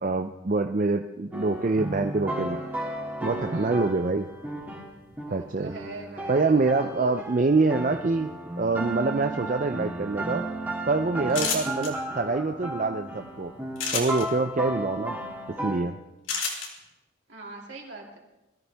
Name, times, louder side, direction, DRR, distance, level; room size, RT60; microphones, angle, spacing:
voice 1, 0.0-2.6 3.2-4.3 5.3-5.8 6.3-10.5 10.9-13.5 13.9-15.2 15.5-16.0, right 3 dB, 40° right, 6 dB, 0.4 m, -25 dB
sound 1, 1.3-15.8, right 1 dB, 10° right, 2.0 m, -34 dB
voice 2, 3.5-3.8 5.3-7.1 11.3-11.5 17.3-18.2, right 2 dB, 70° right, -2 dB, 3.4 m, -42 dB
sound 2, 11.3-11.9 13.7-14.2 16.3-16.7, left 5 dB, 90° left, 3.1 m, -28 dB
21.0 x 14.0 x 3.4 m, 0.96 s
head